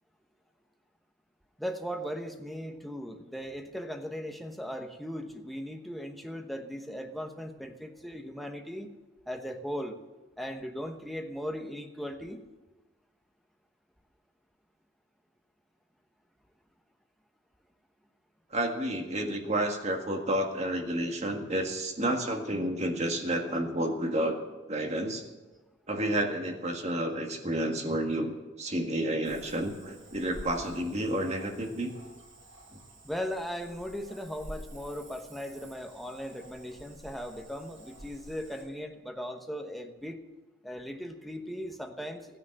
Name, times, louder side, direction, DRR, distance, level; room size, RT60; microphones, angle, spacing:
voice 1, 1.6-8.9 9.3-10.0 10.4-12.4 33.0-40.2 40.6-42.4, equal, ahead, 4 dB, 1.1 m, -38 dB
voice 2, 18.5-24.4 24.7-25.2 25.9-28.3 28.6-31.9 32.7-32.8, right 1 dB, 35° right, 3 dB, 1.8 m, -30 dB
Cricket / Frog, 29.2-38.6, right 1 dB, 80° right, 6.4 m, -50 dB
14.5 x 10.0 x 7.7 m, 1.2 s
head